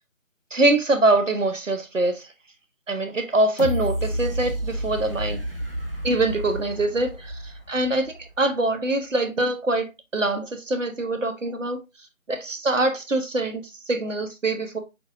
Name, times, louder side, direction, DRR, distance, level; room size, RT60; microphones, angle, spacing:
voice 1, 0.5-2.3 2.9-5.4 6.0-11.8 12.3-14.8, right 2 dB, 65° right, 1.0 m, -24 dB
sound 1, 3.6-8.5 8.9-9.0, equal, 45° right, 0.5 m, -31 dB
6.1 x 2.6 x 2.6 m
figure-of-eight pair, 170°, 42 cm